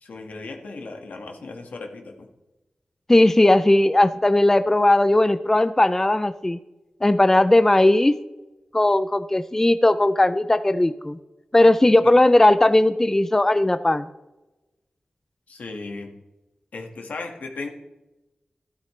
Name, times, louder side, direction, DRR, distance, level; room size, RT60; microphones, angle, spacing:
voice 1, 0.0-2.3 12.0-12.1 15.5-16.1 16.7-17.7, left 3 dB, 90° left, 3 dB, 1.8 m, -36 dB
voice 2, 3.1-6.6 7.0-8.1 8.7-11.2 11.5-14.1, left 1 dB, 15° left, 12 dB, 0.4 m, -17 dB
13.0 x 12.0 x 3.3 m, 1.0 s
wide cardioid pair, 110°, 3 cm